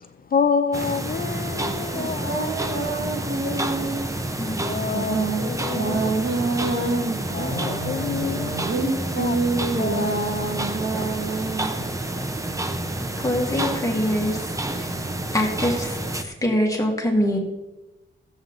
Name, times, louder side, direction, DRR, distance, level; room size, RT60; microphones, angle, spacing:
voice 1, 0.3-2.5 3.4-3.5 4.6-6.1 7.3-8.5 8.8-8.9 9.2-9.4 9.8-10.1, left 6 dB, 45° left, 10 dB, 0.4 m, -27 dB
sound 1, 0.7-16.2, right 1 dB, 15° right, 0.7 m, -29 dB
voice 2, 1.9-4.1 4.9-11.7, right 3 dB, 60° right, 1 dB, 1.9 m, -27 dB
voice 3, 13.2-14.4 14.8-14.9 15.3-17.4, equal, 15° left, -1 dB, 1.9 m, -24 dB
15.0 x 7.6 x 3.9 m, 1.0 s
wide cardioid pair, 180°, 20 cm